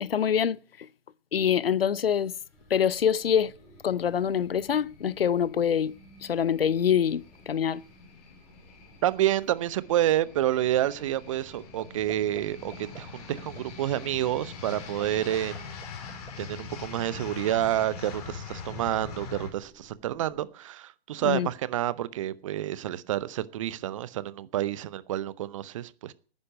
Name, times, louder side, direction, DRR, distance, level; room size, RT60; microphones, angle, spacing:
voice 1, 0.0-0.9 1.3-2.3 2.7-3.5 3.8-5.9 6.2-7.8 21.2-21.5, left 8 dB, 70° left, 0.7 m, -25 dB
sound 1, 2.5-20.4, equal, 5° right, 3.5 m, -57 dB
sound 2, 3.7-19.5, left 5 dB, 40° left, 3.3 m, -43 dB
voice 2, 9.0-15.8 16.4-26.1, right 13 dB, 35° right, 0.7 m, -29 dB
sound 3, 11.5-11.8 12.1-12.4 12.7-13.0 13.4-13.6 13.9-14.0 14.4-15.0 15.3-16.3, right 4 dB, 75° right, 6.0 m, -44 dB
10.5 x 9.8 x 9.5 m
figure-of-eight pair, 130°, 30 cm